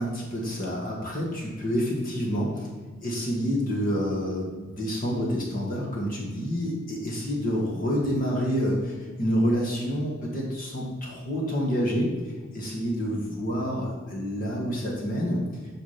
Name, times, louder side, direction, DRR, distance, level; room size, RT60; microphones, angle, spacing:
voice 1, 0.0-2.7 3.0-15.4, equal, 40° left, -3 dB, 2.0 m, -28 dB
8.8 x 5.2 x 5.9 m, 1.4 s
head